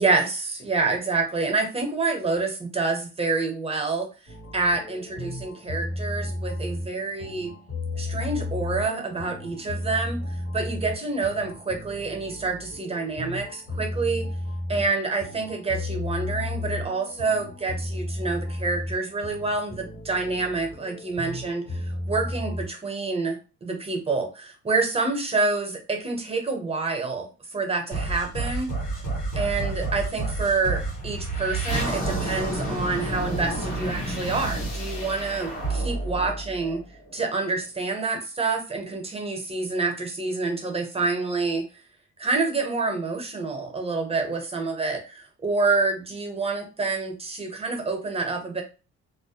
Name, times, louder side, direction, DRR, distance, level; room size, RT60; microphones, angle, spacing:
voice 1, 0.0-4.1 4.5-7.5 8.0-14.2 14.7-28.7 29.3-36.8 37.1-41.6 42.2-48.6, right 3 dB, 20° right, 3 dB, 0.8 m, -27 dB
sound 1, 4.3-22.7, left 2 dB, 55° left, 1.3 m, -34 dB
sound 2, 27.9-37.2, right 2 dB, 80° left, 1.2 m, -29 dB
2.4 x 2.1 x 2.7 m, 0.33 s
cardioid pair, 90°, 30 cm